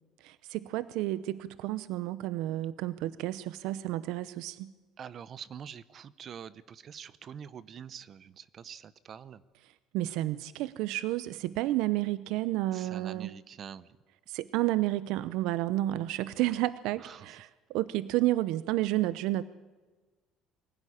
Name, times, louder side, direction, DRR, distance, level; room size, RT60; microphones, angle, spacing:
voice 1, 0.2-4.7 9.9-13.3 14.3-19.4, right 16 dB, 70° right, 15 dB, 0.7 m, -31 dB
voice 2, 5.0-9.4 12.7-14.0 17.0-17.3, right 8 dB, 35° right, 17 dB, 0.8 m, -45 dB
23.5 x 16.5 x 10.0 m, 1.3 s
cardioid pair, 150°, 0 cm